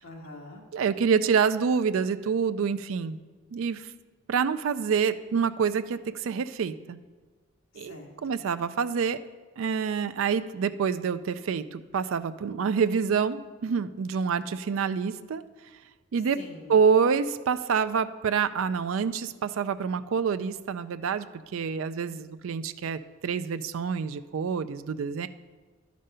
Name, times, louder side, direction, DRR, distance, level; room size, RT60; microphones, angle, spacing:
voice 1, 0.0-0.6 7.7-8.4 16.4-16.7, left 2 dB, 70° left, -1 dB, 1.8 m, -45 dB
voice 2, 0.7-3.2 3.5-3.9 4.3-7.0 7.8-9.2 9.6-15.4 16.1-16.4 16.7-21.3 21.5-25.3, right 6 dB, 65° right, 12 dB, 0.4 m, -27 dB
11.0 x 5.2 x 5.5 m, 1.4 s
head